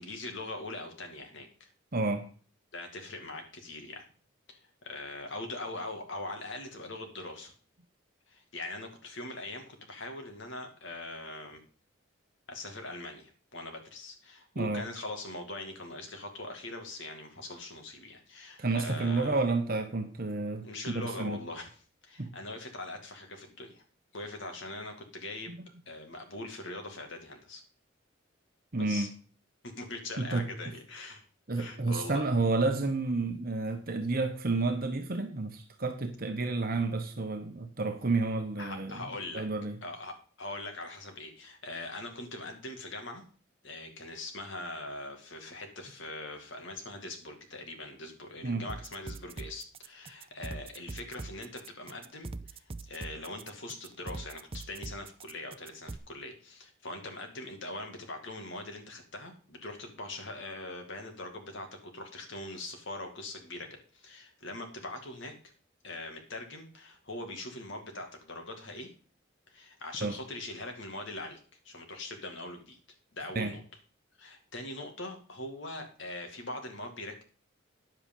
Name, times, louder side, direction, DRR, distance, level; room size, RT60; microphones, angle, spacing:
voice 1, 0.0-1.7 2.7-4.0 4.5-7.5 8.3-11.6 12.5-19.5 20.6-21.8 22.0-23.8 24.1-25.6 25.9-27.6 28.8-29.1 29.6-31.2 31.6-32.3 38.6-39.4 39.8-43.2 43.6-61.7 61.9-65.3 65.8-68.9 69.5-71.4 71.6-72.8 73.1-73.6 74.2-77.2, left 2 dB, 70° left, 4 dB, 2.3 m, -42 dB
voice 2, 1.9-2.3 14.6-14.9 18.6-21.4 22.2-22.3 25.5-25.7 28.7-29.1 30.2-30.5 31.5-39.0 39.3-39.8 48.4-48.7 70.0-70.1 73.3-73.5, right 3 dB, 50° right, 5 dB, 1.0 m, -30 dB
sound 1, 48.7-56.0, right 3 dB, 30° right, 0.5 m, -42 dB
10.0 x 7.8 x 5.4 m, 0.40 s
head